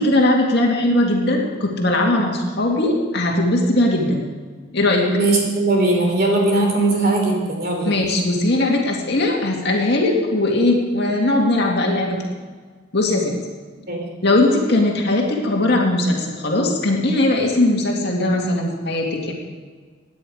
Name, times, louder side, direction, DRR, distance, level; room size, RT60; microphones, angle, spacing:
voice 1, 0.0-4.3 4.7-5.1 7.9-12.2 12.9-13.3 14.2-19.3, left 1 dB, 55° left, 0 dB, 2.3 m, -19 dB
voice 2, 5.1-7.9 13.9-14.0, right 2 dB, 50° right, 1 dB, 3.3 m, -19 dB
16.5 x 10.0 x 4.9 m, 1.5 s
head